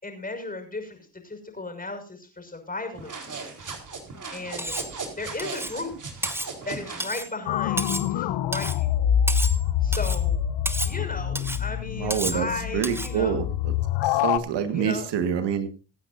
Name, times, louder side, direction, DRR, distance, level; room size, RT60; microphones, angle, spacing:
voice 1, 0.0-3.4 4.3-4.7 5.2-6.1 6.6-8.9 9.8-10.4 10.8-13.4 14.7-15.1, left 3 dB, 20° left, 5 dB, 6.2 m, -35 dB
sound 1, 2.9-7.1, right 4 dB, 45° right, 4.4 m, -37 dB
Cutlery silverware, 4.6-4.9 5.4-5.8 6.2-6.5 7.0-7.3 7.8-8.1 8.5-8.8 9.3-9.6 9.9-10.2 10.7-11.0 11.4-11.6 12.1-12.4 12.8-13.1, right 1 dB, 5° right, 1.1 m, -31 dB
sound 2, 7.5-14.4, left 10 dB, 80° left, 0.9 m, -26 dB
voice 2, 12.0-12.5 12.7-13.7 14.0-15.7, right 8 dB, 75° right, 9 dB, 1.8 m, -26 dB
25.5 x 9.2 x 2.7 m, 0.33 s
supercardioid pair, 65°, 42 cm